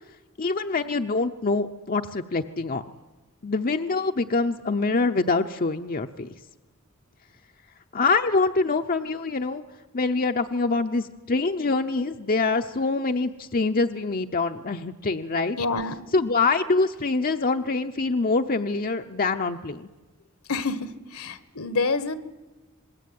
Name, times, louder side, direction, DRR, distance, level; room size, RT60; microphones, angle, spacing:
voice 1, 0.4-2.8 3.4-6.3 7.9-9.6 9.9-19.9, left 3 dB, 40° left, 6 dB, 0.8 m, -25 dB
voice 2, 15.6-16.0 20.5-22.1, left 3 dB, 70° left, 14 dB, 1.5 m, -27 dB
26.5 x 20.5 x 9.4 m, 1.2 s
head